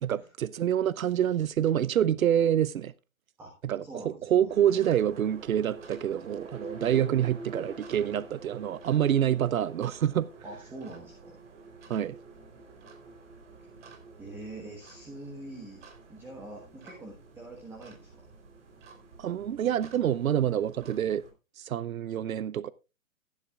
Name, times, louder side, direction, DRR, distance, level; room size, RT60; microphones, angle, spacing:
voice 1, 0.0-2.9 3.6-10.3 11.9-12.2 19.2-21.2 21.6-22.7, right 10 dB, 85° right, 0.6 m, -27 dB
voice 2, 3.8-4.5 10.4-11.4 14.2-15.8 16.1-18.2, right 2 dB, 5° right, 1.3 m, -44 dB
sound 1, 4.5-21.3, right 3 dB, 60° right, 3.6 m, -48 dB
16.5 x 10.5 x 2.4 m
hypercardioid pair, 150°, 40 cm